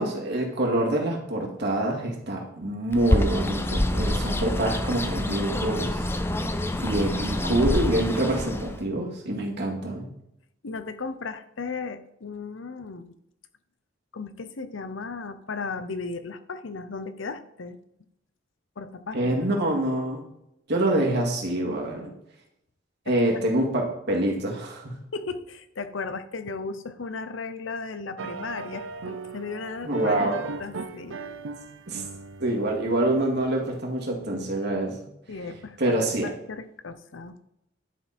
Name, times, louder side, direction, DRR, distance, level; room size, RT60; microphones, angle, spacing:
voice 1, 0.0-6.1 6.7-10.1 19.1-20.2 20.7-22.1 23.1-25.0 29.8-30.4 31.9-32.0 32.4-35.1 35.8-36.3, right 1 dB, 60° right, 0 dB, 2.2 m, -26 dB
Bird, 2.9-8.8, left 1 dB, 15° left, 0.6 m, -27 dB
voice 2, 10.6-13.2 14.1-17.8 18.8-19.5 21.8-22.2 23.1-23.2 25.1-31.2 35.3-37.4, left 4 dB, 80° left, 11 dB, 0.8 m, -36 dB
sound 1, 28.2-33.4, right 4 dB, 90° right, 0.7 m, -38 dB
11.0 x 6.0 x 4.3 m, 0.80 s
head